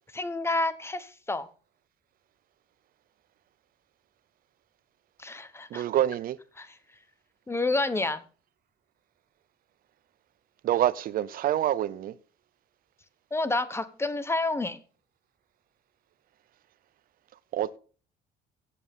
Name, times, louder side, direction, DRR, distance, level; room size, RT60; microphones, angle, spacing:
voice 1, 0.1-1.5 5.2-5.8 6.6-6.8 7.5-8.2 13.3-14.8, left 2 dB, 15° left, 1.1 m, -29 dB
voice 2, 5.7-6.4 10.6-12.1 17.5-17.8, right 12 dB, 60° right, 0.6 m, -26 dB
14.5 x 8.4 x 3.6 m
cardioid pair, 110°, 17 cm